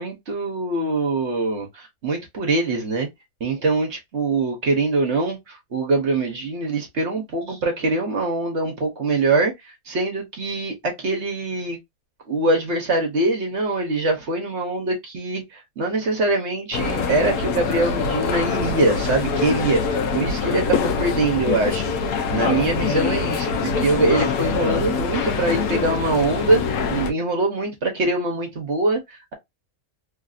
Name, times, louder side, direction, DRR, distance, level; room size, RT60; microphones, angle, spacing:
voice 1, 0.0-3.1 3.4-9.5 9.9-11.8 12.3-21.9 22.3-29.3, right 2 dB, 55° right, 1.2 m, -23 dB
sound 1, 16.7-27.1, left 5 dB, 75° left, 1.1 m, -24 dB
3.2 x 2.6 x 2.4 m
omnidirectional pair, 1.6 m